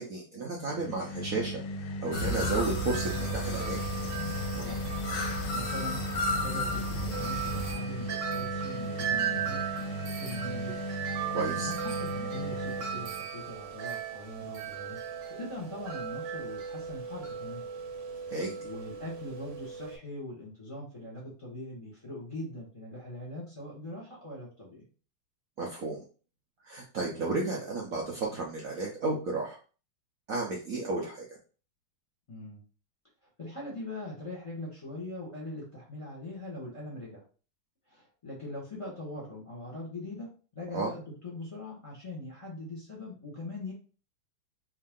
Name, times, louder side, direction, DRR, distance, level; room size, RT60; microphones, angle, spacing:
voice 1, 0.0-1.6 2.0-3.8 11.3-11.7 18.3-18.6 25.6-26.0 26.6-29.6 30.3-31.3 40.7-40.9, right 3 dB, 85° right, -2 dB, 0.7 m, -32 dB
sound 1, 0.6-13.2, left 1 dB, 75° left, 1.3 m, -37 dB
sound 2, 2.1-7.7, left 2 dB, 55° left, 1.0 m, -33 dB
Wind chime, 2.1-20.0, right 8 dB, 60° right, 1.3 m, -37 dB
voice 2, 4.5-4.9 5.3-10.8 11.3-15.0 15.3-17.6 18.6-24.9 32.3-32.6 33.4-37.2 37.9-43.7, left 1 dB, 20° left, -4 dB, 1.1 m, -41 dB
3.5 x 2.7 x 3.6 m, 0.37 s
omnidirectional pair, 2.4 m